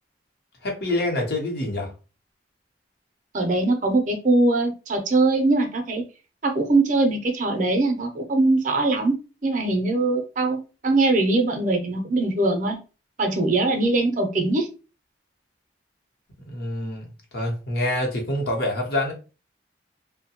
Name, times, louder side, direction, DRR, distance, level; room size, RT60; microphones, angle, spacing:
voice 1, 0.6-1.9 16.5-17.1 17.3-19.1, left 1 dB, 55° left, 0.8 m, -26 dB
voice 2, 3.3-6.0 6.4-9.2 9.4-12.8 13.2-14.7, right 2 dB, 45° right, 0.5 m, -21 dB
2.7 x 2.1 x 2.8 m
head